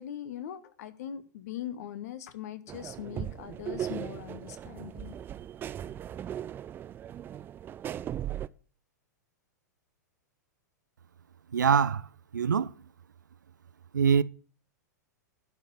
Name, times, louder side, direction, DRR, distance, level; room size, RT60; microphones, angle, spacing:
voice 1, 0.0-5.1, left 10 dB, 55° left, 1.2 m, -41 dB
sound 1, 2.7-8.5, right 10 dB, 20° right, 0.4 m, -38 dB
voice 2, 11.5-12.1 12.3-12.7 13.9-14.2, right 6 dB, 80° right, 0.4 m, -23 dB
11.5 x 5.0 x 6.8 m
figure-of-eight pair, 100°, 10 cm